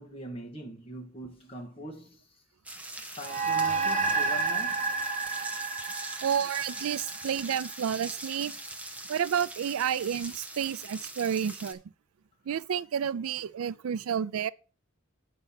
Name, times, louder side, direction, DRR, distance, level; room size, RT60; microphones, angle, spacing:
voice 1, 0.0-2.4 3.0-5.0, equal, 25° left, 2.0 m, -42 dB
sound 1, 2.7-11.7, right 2 dB, 5° right, 0.7 m, -42 dB
sound 2, 3.2-7.9, right 4 dB, 35° right, 1.0 m, -30 dB
voice 2, 6.2-8.5 9.1-11.8 12.5-14.5, right 8 dB, 85° right, 0.4 m, -30 dB
8.2 x 5.5 x 5.6 m
head